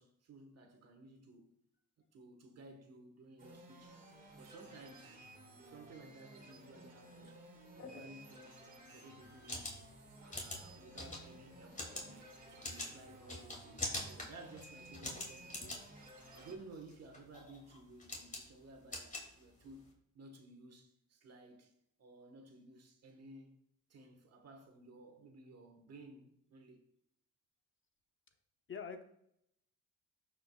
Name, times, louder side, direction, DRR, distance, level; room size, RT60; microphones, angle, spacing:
voice 1, 0.0-1.5 2.1-4.0 4.3-5.2 5.6-7.4 7.7-8.6 8.9-9.8 10.1-15.9 16.3-19.8 20.1-21.7 22.0-23.5 23.9-26.8, right 2 dB, 55° right, 1.6 m, -56 dB
sound 1, 3.4-16.6, right 1 dB, 30° right, 2.0 m, -56 dB
sound 2, 9.2-19.9, left 1 dB, 25° left, 2.6 m, -45 dB
voice 2, 28.7-29.0, left 6 dB, 40° left, 0.9 m, -45 dB
13.5 x 5.1 x 2.4 m
cardioid pair, 90°, 30 cm